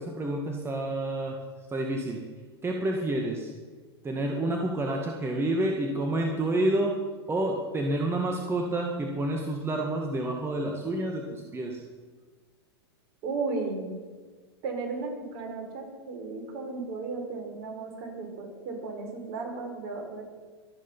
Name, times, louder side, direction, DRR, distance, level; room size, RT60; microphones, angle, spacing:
voice 1, 0.0-1.4 1.7-2.2 2.6-3.5 4.0-7.0 7.3-11.8, right 1 dB, 15° right, 2 dB, 1.9 m, -29 dB
voice 2, 13.2-13.9 14.6-20.2, right 3 dB, 50° right, 2 dB, 5.0 m, -35 dB
24.0 x 8.5 x 5.6 m, 1.4 s
hypercardioid pair, 105°, 14 cm